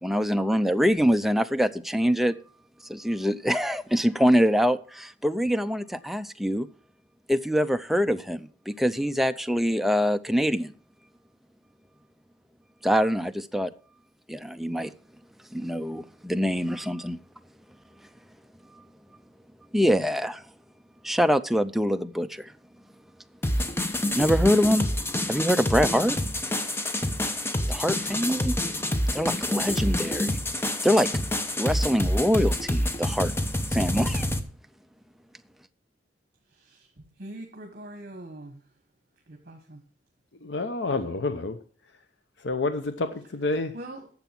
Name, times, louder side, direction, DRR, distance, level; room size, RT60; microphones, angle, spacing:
voice 1, 0.0-2.3 2.9-6.7 7.3-10.7 12.8-13.7 14.3-14.9 15.5-17.2 19.7-20.4 21.0-22.5 24.1-24.9 25.3-26.2 27.7-28.6 29.1-30.4 30.8-31.1 31.6-33.3 33.7-34.3, equal, ahead, 0.5 m, -24 dB
sound 1, 23.4-34.4, left 1 dB, 15° left, 0.9 m, -27 dB
voice 2, 36.5-38.7 39.3-39.8 43.5-44.1, right 1 dB, 55° right, 1.5 m, -43 dB
voice 3, 40.4-41.6 42.4-43.7, left 3 dB, 85° left, 0.8 m, -28 dB
10.5 x 7.2 x 5.9 m
head